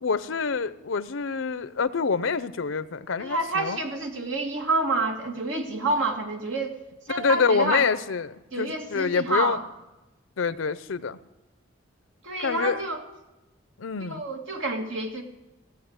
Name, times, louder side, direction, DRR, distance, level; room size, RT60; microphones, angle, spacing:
voice 1, 0.0-3.8 7.1-9.6 10.4-11.2 12.4-12.8 13.8-14.2, left 5 dB, 85° left, 16 dB, 0.6 m, -26 dB
voice 2, 3.2-6.8 7.1-7.9 8.5-9.6 12.2-13.0 14.0-15.2, right 2 dB, 80° right, 3 dB, 2.1 m, -28 dB
16.0 x 8.1 x 7.9 m, 1.0 s
head